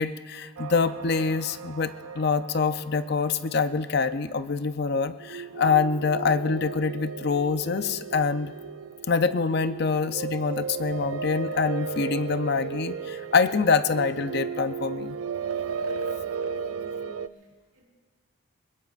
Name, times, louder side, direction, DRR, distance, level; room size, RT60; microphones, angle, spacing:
voice 1, 0.0-8.5 9.1-15.2, left 5 dB, 50° left, 11 dB, 0.5 m, -25 dB
sound 1, 0.6-4.0 5.2-17.3, right 6 dB, 90° right, 0.4 m, -35 dB
voice 2, 16.3-17.8, right 2 dB, 70° right, -3 dB, 4.7 m, -56 dB
24.0 x 21.5 x 2.5 m, 1.5 s
head